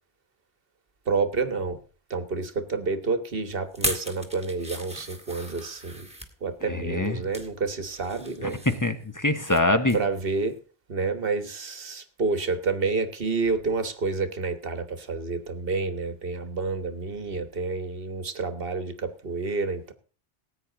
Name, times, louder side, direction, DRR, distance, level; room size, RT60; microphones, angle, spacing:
voice 1, 1.1-1.8 2.1-6.1 6.4-8.6 9.9-10.6 10.9-19.9, right 4 dB, 55° right, 1.5 m, -29 dB
sound 1, 3.7-6.3 6.9-7.5 7.9-9.6 9.9-10.1 10.5-10.6, right 1 dB, 5° right, 1.9 m, -36 dB
voice 2, 6.6-7.2 8.4-10.0, left 2 dB, 15° left, 1.1 m, -24 dB
18.5 x 8.9 x 3.9 m
omnidirectional pair, 1.2 m